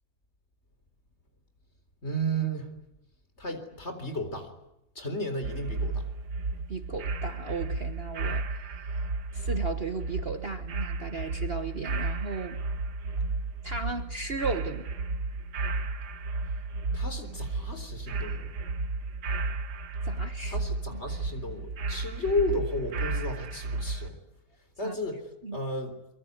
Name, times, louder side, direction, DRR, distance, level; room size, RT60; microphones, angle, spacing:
voice 1, 2.0-2.7 3.4-4.5 5.0-6.0 16.9-18.5 20.5-24.2 24.8-25.9, equal, 40° left, 8 dB, 4.1 m, -33 dB
sound 1, 5.4-24.1, right 3 dB, 75° right, 2.0 m, -33 dB
voice 2, 6.7-8.6 9.3-12.6 13.6-14.9 20.0-20.6 20.9-21.0 24.8-24.9 25.4-25.6, right 4 dB, 40° right, 8 dB, 1.4 m, -35 dB
24.5 x 23.0 x 9.7 m, 0.86 s
omnidirectional pair, 1.8 m